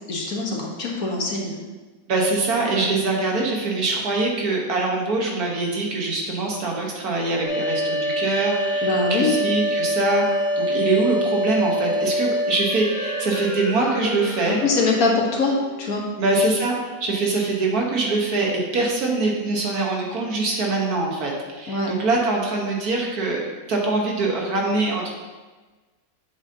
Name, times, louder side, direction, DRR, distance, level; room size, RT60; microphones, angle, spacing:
voice 1, 0.1-1.6 2.7-2.9 8.8-9.3 14.4-16.0 21.7-21.9, left 3 dB, 65° left, -1 dB, 1.6 m, -23 dB
voice 2, 2.1-10.3 10.6-14.6 16.2-23.4 23.7-25.1, right 3 dB, 70° right, -1 dB, 1.7 m, -23 dB
sound 1, 7.4-16.0, equal, 25° left, 0.7 m, -26 dB
7.6 x 7.2 x 2.8 m, 1.3 s
omnidirectional pair, 1.7 m